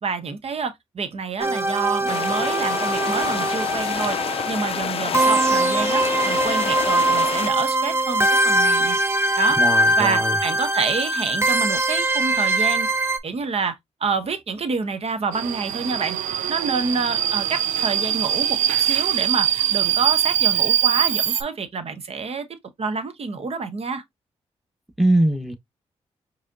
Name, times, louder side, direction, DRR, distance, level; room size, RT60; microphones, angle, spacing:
voice 1, 0.0-9.0 9.4-9.6 10.0-12.9 13.2-16.2 16.5-24.0, right 5 dB, 55° right, 1.0 m, -28 dB
sound 1, 1.4-13.2, right 1 dB, 20° right, 0.8 m, -22 dB
sound 2, 2.1-7.5, left 8 dB, 50° left, 0.4 m, -28 dB
voice 2, 9.6-10.4 25.0-25.5, right 1 dB, ahead, 1.2 m, -21 dB
Subway metro underground, 15.3-21.4, right 11 dB, 90° right, 0.4 m, -22 dB
4.9 x 3.3 x 2.7 m
supercardioid pair, 55°, 12 cm